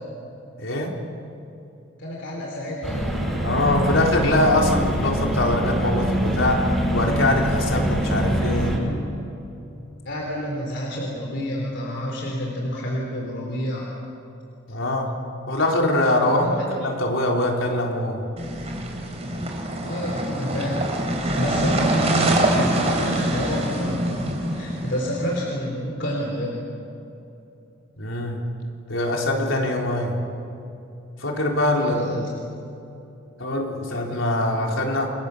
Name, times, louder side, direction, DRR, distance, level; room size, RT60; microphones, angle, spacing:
voice 1, 0.6-0.9 3.4-6.7 6.9-8.7 14.7-15.2 15.5-18.2 28.0-28.4 28.9-30.1 31.2-32.1 33.4-35.1, left 1 dB, 85° left, 0 dB, 4.2 m, -23 dB
voice 2, 2.0-3.2 10.1-13.9 16.2-16.7 19.8-26.6 31.8-32.2, equal, 65° left, -2 dB, 3.6 m, -29 dB
sound 1, 2.8-8.8, equal, ahead, 7.0 m, -24 dB
sound 2, 18.4-25.4, right 1 dB, 35° right, 4.0 m, -24 dB
28.5 x 22.5 x 7.0 m, 2.8 s
head